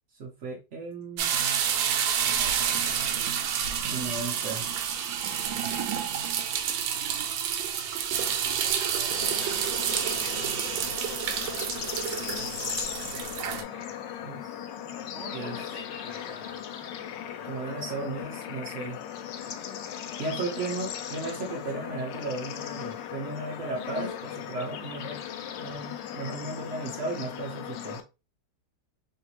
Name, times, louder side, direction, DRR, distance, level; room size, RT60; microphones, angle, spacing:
voice 1, 0.2-1.4 3.9-4.7 14.2-14.5 15.3-15.5 17.4-19.0 20.2-25.2 25.6-28.0, right 3 dB, 60° right, -2 dB, 0.8 m, -35 dB
sound 1, 1.2-13.6, right 8 dB, 90° right, 1.3 m, -29 dB
voice 2, 2.2-4.1 5.3-5.8 8.5-10.2 13.5-13.9 15.1-16.6 17.4-18.1, left 1 dB, 60° left, -1 dB, 0.7 m, -48 dB
Bird / Insect / Frog, 9.1-28.0, left 9 dB, 75° left, 1.2 m, -37 dB
3.3 x 2.6 x 2.9 m, 0.27 s
omnidirectional pair, 2.0 m